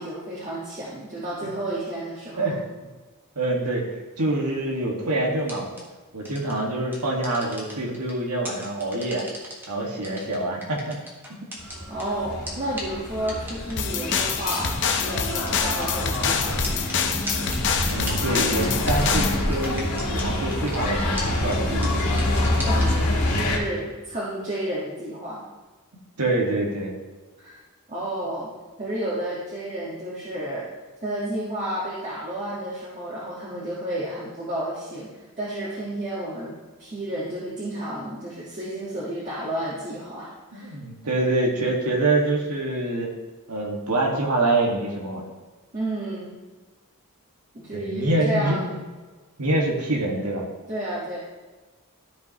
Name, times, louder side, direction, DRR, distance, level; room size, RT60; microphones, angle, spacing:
voice 1, 0.0-2.5 11.9-16.8 22.6-25.4 27.4-27.6 27.9-28.5 28.8-30.7 31.0-35.1 35.4-40.7 45.7-46.4 47.5-48.6 50.7-51.2, right 1 dB, 30° right, -8 dB, 1.6 m, -31 dB
voice 2, 3.3-5.7 6.1-9.2 9.7-11.0 17.9-22.2 22.9-23.0 26.2-26.9 40.5-43.1 43.5-45.2 47.7-48.8 49.4-50.4, right 2 dB, 90° right, -1 dB, 1.8 m, -25 dB
sound 1, 5.4-5.8 6.2-6.5 6.9-8.1 8.4-9.6 10.0-12.0 12.5-12.6 12.8-12.9 13.3-13.7 14.1-14.2 14.5-14.6 14.9-15.0 15.2-16.2 16.6-20.2 20.5-20.9 21.2-21.3 21.5-21.6 21.8-22.8, equal, 10° right, 1.6 m, -35 dB
sound 2, 11.6-23.6, left 1 dB, 85° left, 2.0 m, -26 dB
sound 3, 13.8-19.4, left 7 dB, 55° left, 0.7 m, -26 dB
13.0 x 5.3 x 3.0 m, 1.3 s
head